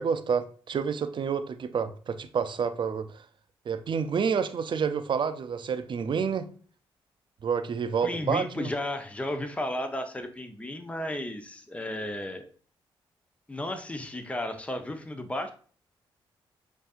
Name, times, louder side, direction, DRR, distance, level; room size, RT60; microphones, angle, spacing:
voice 1, 0.0-3.1 3.7-6.5 7.4-8.7, right 6 dB, 55° right, 0.5 m, -29 dB
voice 2, 8.0-12.5 13.5-15.5, left 1 dB, 15° left, 0.7 m, -33 dB
7.8 x 2.7 x 2.5 m
cardioid pair, 65°, 10 cm